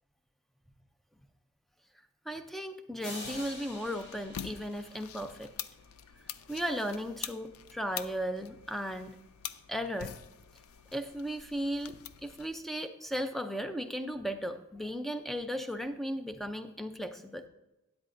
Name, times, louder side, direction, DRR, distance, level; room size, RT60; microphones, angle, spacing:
voice 1, 2.3-5.5 6.5-9.2 9.7-10.2 10.9-17.5, equal, ahead, 8 dB, 0.4 m, -36 dB
sound 1, 3.0-5.7, left 2 dB, 55° left, 2.0 m, -46 dB
sound 2, 3.2-12.5, left 9 dB, 80° left, 0.5 m, -46 dB
12.5 x 9.7 x 2.6 m, 0.97 s
head